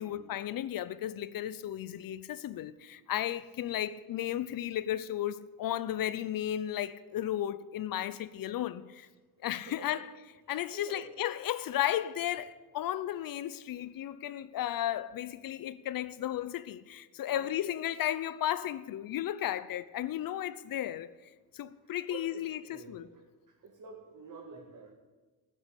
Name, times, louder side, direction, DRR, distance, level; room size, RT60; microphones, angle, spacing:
voice 1, 0.0-9.1 9.4-10.0 10.5-21.1 21.5-22.6 22.9-23.1, left 12 dB, 60° left, 0.7 m, -34 dB
voice 2, 9.7-10.0 10.7-11.1 11.8-11.9 17.2-17.5 20.5-20.6 21.7-24.9, right 5 dB, 55° right, 2.3 m, -50 dB
16.5 x 7.6 x 8.2 m
cardioid pair, 95°, 37 cm